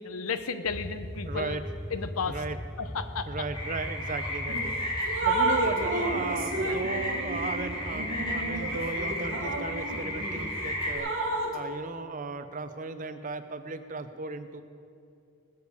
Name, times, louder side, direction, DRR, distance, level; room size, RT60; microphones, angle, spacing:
voice 1, 0.0-1.6 1.9-2.4 2.8-3.4 6.6-6.8, left 5 dB, 85° left, 11 dB, 0.8 m, -34 dB
sound 1, 0.7-11.0, equal, 5° left, 0.5 m, -41 dB
voice 2, 1.3-1.6 2.3-2.6 3.3-11.1 11.5-14.6, right 3 dB, 40° right, 10 dB, 0.6 m, -36 dB
sound 2, 3.5-11.0, left 1 dB, 25° left, 2.7 m, -34 dB
Drip, 4.5-4.7 5.0-10.4 10.9-11.6, right 2 dB, 60° right, 1.6 m, -31 dB
20.5 x 7.0 x 6.6 m, 2.6 s
head